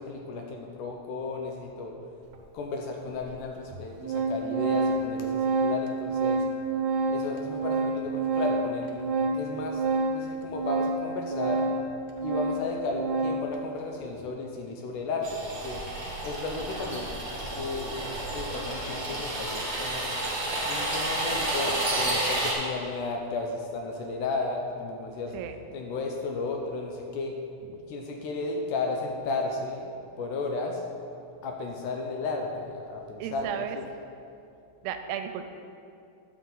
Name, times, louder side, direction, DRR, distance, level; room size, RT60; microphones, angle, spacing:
voice 1, 0.0-1.9 2.5-6.4 7.1-9.8 10.1-11.7 12.2-15.8 16.2-17.1 17.6-18.0 18.3-20.1 20.7-25.4 25.7-27.4 27.9-30.8 31.4-33.8, left 3 dB, 80° left, 2 dB, 2.0 m, -34 dB
Organ, 2.3-2.4 3.3-3.4 3.7-13.6, right 3 dB, 70° right, 2.3 m, -28 dB
sound 1, 15.2-22.5, right 1 dB, 50° right, 0.7 m, -31 dB
voice 2, 33.2-33.8 34.8-35.5, right 9 dB, 90° right, 7 dB, 2.4 m, -33 dB
9.9 x 7.3 x 3.9 m, 2.6 s
omnidirectional pair, 4.1 m